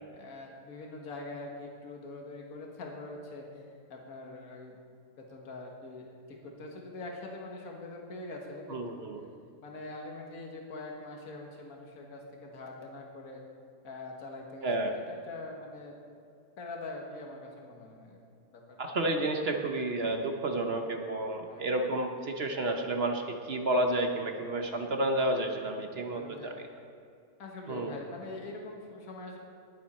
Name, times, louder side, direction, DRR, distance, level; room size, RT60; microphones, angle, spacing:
voice 1, 0.1-3.6 3.9-4.8 5.2-9.1 9.6-13.4 13.8-16.0 16.6-18.2 18.5-18.8 21.4-21.7 26.1-26.5 27.4-29.4, left 2 dB, 60° left, 0 dB, 1.9 m, -43 dB
voice 2, 8.7-9.2 14.6-14.9 18.8-26.7 27.7-28.0, right 1 dB, 45° right, 4 dB, 0.9 m, -31 dB
20.0 x 7.6 x 4.3 m, 2.4 s
omnidirectional pair, 1.8 m